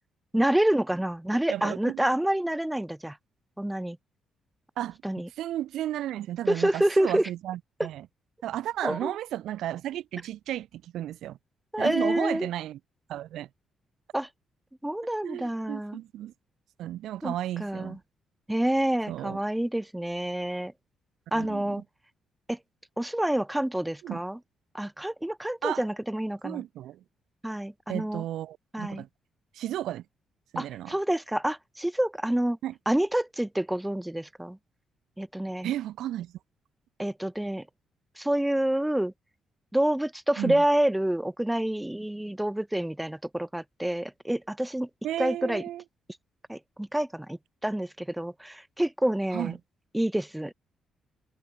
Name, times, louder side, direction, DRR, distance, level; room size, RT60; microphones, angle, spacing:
voice 1, 0.3-3.2 3.6-4.0 5.0-5.3 6.5-7.3 7.8-7.9 8.8-9.1 11.7-12.5 14.1-14.3 14.8-16.0 17.2-17.3 17.6-18.0 18.5-20.7 21.3-21.8 22.5-22.6 23.0-24.4 24.7-26.6 27.4-28.2 28.7-29.0 30.6-32.6 32.9-34.6 35.2-35.7 37.0-37.7 38.2-39.1 39.7-44.9 45.2-45.6 46.5-49.5 49.9-50.5, right 1 dB, 5° right, 0.6 m, -28 dB
voice 2, 1.5-2.0 4.8-5.0 5.4-8.1 8.4-11.4 11.8-12.8 13.1-13.5 15.2-16.3 16.8-18.0 19.1-19.4 21.3-21.8 24.0-24.2 25.6-25.8 26.4-27.0 27.9-29.1 29.5-30.0 30.5-31.0 32.6-32.7 35.6-36.3 40.4-40.6 45.0-45.8 49.3-49.6, right 12 dB, 80° right, 2.1 m, -33 dB
cardioid pair, 155°, 0 cm